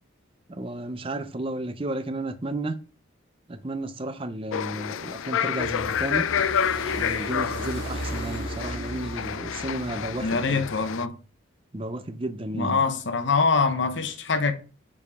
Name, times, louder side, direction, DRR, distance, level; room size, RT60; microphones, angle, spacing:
voice 1, 0.5-2.8 3.5-6.3 7.0-10.6 11.7-12.8, right 1 dB, 25° right, 0.6 m, -32 dB
sound 1, 4.5-11.1, left 8 dB, 85° left, 0.4 m, -29 dB
sound 2, 5.6-10.8, right 2 dB, 55° right, 2.9 m, -37 dB
voice 2, 10.2-11.1 12.5-14.5, left 4 dB, 65° left, 0.8 m, -24 dB
7.1 x 4.9 x 3.5 m
head